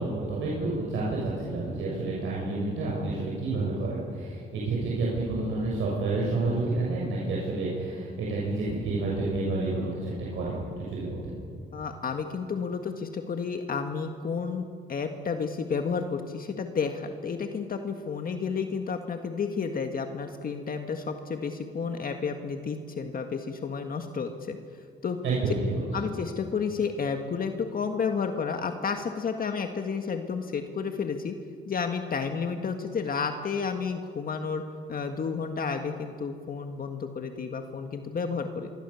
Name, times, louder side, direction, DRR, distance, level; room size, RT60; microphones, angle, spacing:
voice 1, 0.0-11.4 25.2-25.9, right 2 dB, 80° right, -5 dB, 6.9 m, -29 dB
voice 2, 11.7-24.6 25.0-25.2 25.9-31.4 31.7-34.6 34.9-38.7, left 5 dB, 45° left, 5 dB, 1.8 m, -31 dB
25.5 x 23.0 x 7.1 m, 2.2 s
cardioid pair, 90°, 20 cm